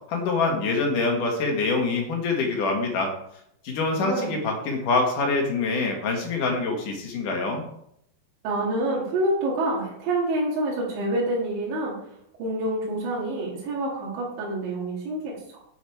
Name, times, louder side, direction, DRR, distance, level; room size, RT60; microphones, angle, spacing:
voice 1, 0.1-3.1 3.6-7.7, left 3 dB, 55° left, 1 dB, 2.7 m, -25 dB
voice 2, 4.0-4.3 8.4-12.0 12.4-15.4, right 1 dB, 75° right, -6 dB, 4.7 m, -27 dB
9.3 x 8.0 x 4.7 m, 0.73 s
omnidirectional pair, 5.3 m